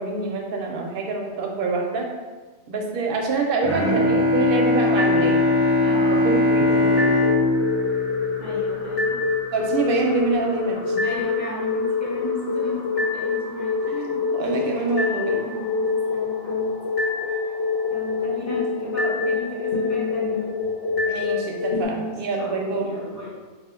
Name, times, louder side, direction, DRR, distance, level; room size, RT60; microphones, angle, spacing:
voice 1, 0.0-2.1 2.7-5.5 6.2-7.1 9.5-11.0 13.9-15.4 21.1-22.9, right 3 dB, 60° right, 1 dB, 0.7 m, -26 dB
Bowed string instrument, 3.6-9.3, left 2 dB, 20° right, 0.4 m, -21 dB
sound 1, 5.0-5.9 7.0-21.8, left 4 dB, 60° left, 0.9 m, -26 dB
voice 2, 5.8-6.3 8.4-9.2 11.0-13.8 15.3-16.8 17.9-20.5 21.7-23.4, equal, 15° left, -8 dB, 0.9 m, -34 dB
3.4 x 2.4 x 3.6 m, 1.3 s
omnidirectional pair, 1.2 m